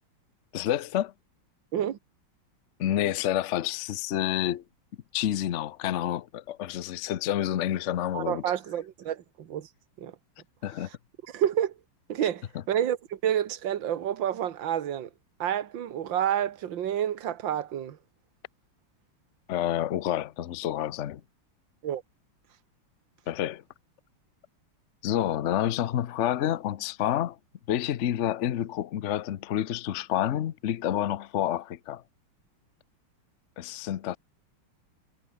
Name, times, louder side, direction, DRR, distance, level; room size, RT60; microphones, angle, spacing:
voice 1, 0.5-1.1 2.8-4.6 5.1-8.4 10.6-10.9 19.5-21.2 23.3-23.6 25.0-27.4 27.7-32.0 33.6-34.2, left 11 dB, 85° left, 0.6 m, -28 dB
voice 2, 8.1-9.7 10.0-10.1 11.3-11.7 12.1-15.1 15.4-18.0 21.8-22.0, right 10 dB, 65° right, 2.1 m, -29 dB
omnidirectional pair, 2.3 m